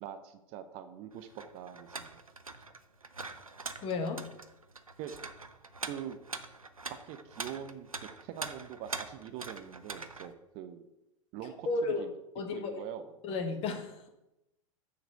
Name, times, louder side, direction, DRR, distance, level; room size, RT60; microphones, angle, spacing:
voice 1, 0.0-2.2 5.0-5.1 5.9-6.2 6.9-10.9 11.3-12.1 12.5-13.2, right 9 dB, 35° right, 9 dB, 0.6 m, -44 dB
sound 1, 1.1-10.3, right 3 dB, 90° right, 0.5 m, -43 dB
voice 2, 3.8-4.3 11.7-12.0 12.3-12.9 13.2-14.1, left 3 dB, 35° left, 6 dB, 1.0 m, -33 dB
6.7 x 4.0 x 6.4 m, 0.93 s
figure-of-eight pair, 90°, 17 cm